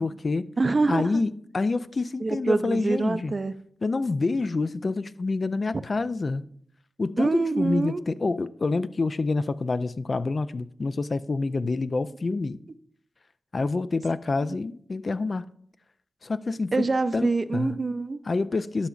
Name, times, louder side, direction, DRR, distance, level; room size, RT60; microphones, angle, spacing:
voice 1, 0.0-0.5 0.9-3.3 3.8-6.5 7.0-12.6 13.5-15.5 16.2-16.7 17.1-17.7 18.3-18.9, left 3 dB, 55° left, 0.3 m, -27 dB
voice 2, 0.6-1.2 2.2-3.6 5.7-5.8 7.2-8.0 16.7-18.2, right 3 dB, 50° right, 0.4 m, -25 dB
11.5 x 5.8 x 2.4 m
cardioid pair, 45°, 0 cm